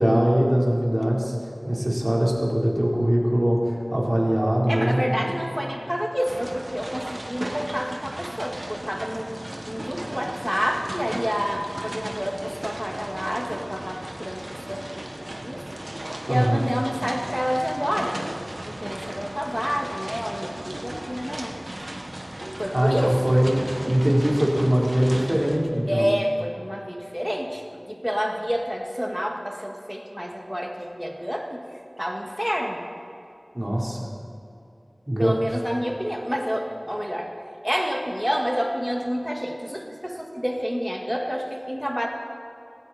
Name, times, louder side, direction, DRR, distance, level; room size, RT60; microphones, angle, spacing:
voice 1, 0.0-5.4 16.3-16.7 22.7-26.1 33.5-34.0 35.1-35.4, equal, 30° right, -3 dB, 4.1 m, -22 dB
voice 2, 4.7-9.4 9.7-15.7 16.3-18.2 18.6-21.6 22.3-23.2 25.9-31.6 32.0-32.9 35.2-37.3 37.6-42.1, equal, 5° right, 1 dB, 2.1 m, -29 dB
sound 1, 6.2-25.6, right 1 dB, 55° right, 1.8 m, -36 dB
18.5 x 17.5 x 4.4 m, 2.7 s
wide cardioid pair, 45°, 0 cm